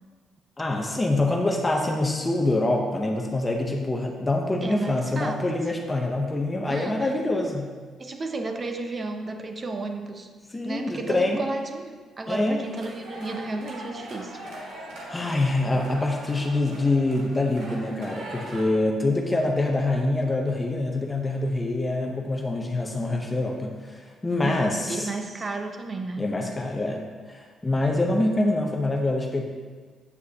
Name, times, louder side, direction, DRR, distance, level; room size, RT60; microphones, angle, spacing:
voice 1, 0.6-7.7 10.5-11.4 12.3-12.6 15.1-25.1 26.2-29.4, left 2 dB, 20° left, 1 dB, 0.8 m, -25 dB
voice 2, 4.6-5.4 6.7-7.1 8.0-10.3 10.6-14.4 24.4-26.2, right 3 dB, 35° right, 5 dB, 0.8 m, -33 dB
sound 1, 12.6-18.6, right 1 dB, 80° right, 1.7 m, -41 dB
8.2 x 7.4 x 2.8 m, 1.5 s
cardioid pair, 90°, 0 cm